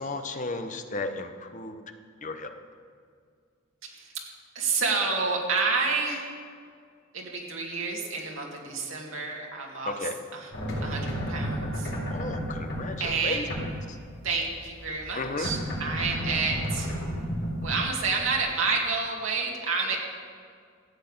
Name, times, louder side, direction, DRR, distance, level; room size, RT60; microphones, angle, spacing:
voice 1, 0.0-1.8 2.2-2.5 9.8-10.2 12.1-14.0 15.2-15.5, left 2 dB, 40° left, 7 dB, 0.9 m, -34 dB
voice 2, 4.5-6.3 7.1-10.0 10.3-10.5 10.8-11.9 13.0-13.5 14.2-16.9 17.6-20.0, right 4 dB, 80° right, -1 dB, 2.5 m, -29 dB
sound 1, 10.5-18.5, equal, 60° left, 3.8 m, -32 dB
14.0 x 8.4 x 7.3 m, 2.1 s
head